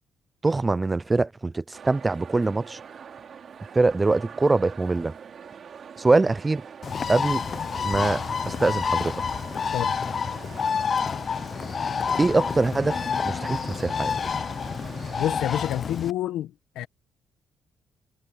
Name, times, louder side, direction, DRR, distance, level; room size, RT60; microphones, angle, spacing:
voice 1, 0.4-2.8 3.7-5.1 6.0-6.6 7.1-7.4 7.8-9.2 12.2-14.1, right 3 dB, 20° right, 0.4 m, -23 dB
sound 1, 1.7-15.4, right 7 dB, 55° right, 2.7 m, -43 dB
Bird, 6.8-16.1, left 6 dB, 45° left, 0.6 m, -28 dB
voice 2, 15.2-16.9, left 12 dB, 90° left, 1.1 m, -28 dB
cardioid pair, 90°, 0 cm